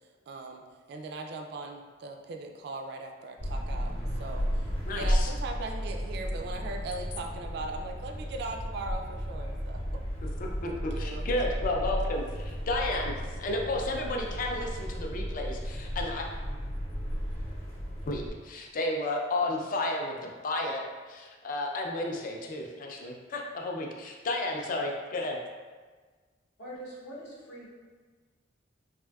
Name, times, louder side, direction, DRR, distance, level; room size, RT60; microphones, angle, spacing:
voice 1, 0.3-0.6 0.9-10.0 10.7-11.3, right 2 dB, 60° right, 3 dB, 0.3 m, -39 dB
sound 1, 3.4-18.3, equal, 30° left, 0.7 m, -34 dB
voice 2, 4.8-5.3 10.4-16.3 18.1-20.8 21.1-25.4, left 2 dB, 45° left, 1 dB, 0.4 m, -32 dB
voice 3, 26.6-27.7, right 1 dB, 70° left, -5 dB, 0.8 m, -43 dB
3.4 x 2.5 x 2.2 m, 1.4 s
head